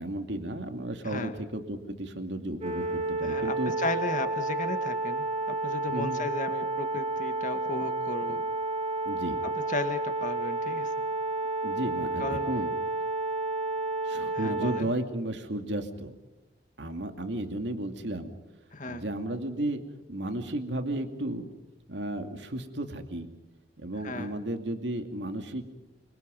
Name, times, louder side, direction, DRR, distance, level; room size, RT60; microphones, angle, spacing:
voice 1, 0.0-3.7 5.9-6.2 9.0-9.4 11.6-12.7 14.0-16.1 16.8-18.3 18.9-19.8 20.1-21.5 21.9-23.3 23.8-25.6, right 1 dB, 75° right, 6 dB, 2.5 m, -33 dB
voice 2, 1.0-1.4 3.2-5.3 5.6-8.4 9.7-10.9 12.2-12.5 14.3-14.9 18.7-19.0 24.0-24.3, left 2 dB, 45° left, 8 dB, 2.2 m, -35 dB
sound 1, 2.6-14.8, right 2 dB, 35° right, 5.1 m, -31 dB
27.5 x 25.5 x 5.3 m, 1.1 s
head